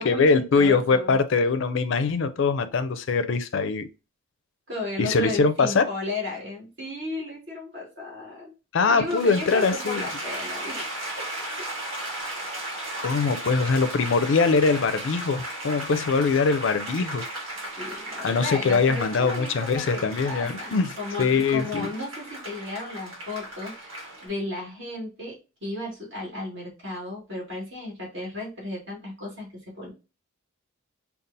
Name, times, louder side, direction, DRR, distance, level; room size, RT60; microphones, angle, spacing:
voice 1, 0.0-3.9 5.0-5.9 8.7-10.0 13.0-17.3 18.2-20.9 21.2-21.9, left 4 dB, 60° left, 0.4 m, -22 dB
voice 2, 0.6-1.2 4.7-8.5 8.9-10.9 11.2-11.3 17.8-29.5 29.7-29.9, left 2 dB, 55° right, 2.0 m, -34 dB
sound 1, 9.1-24.3, right 1 dB, 70° right, 1.6 m, -36 dB
5.3 x 2.3 x 2.6 m
head